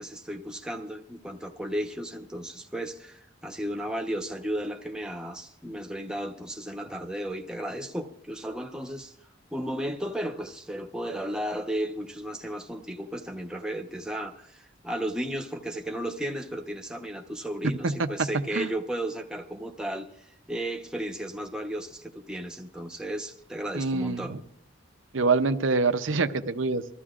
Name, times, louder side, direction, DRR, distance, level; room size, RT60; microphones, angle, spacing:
voice 1, 0.0-9.1 9.5-24.4, right 1 dB, 5° right, 2 dB, 1.0 m, -34 dB
voice 2, 23.7-24.4 25.1-26.8, right 4 dB, 80° right, 9 dB, 0.7 m, -25 dB
24.0 x 13.5 x 2.5 m, 0.73 s
head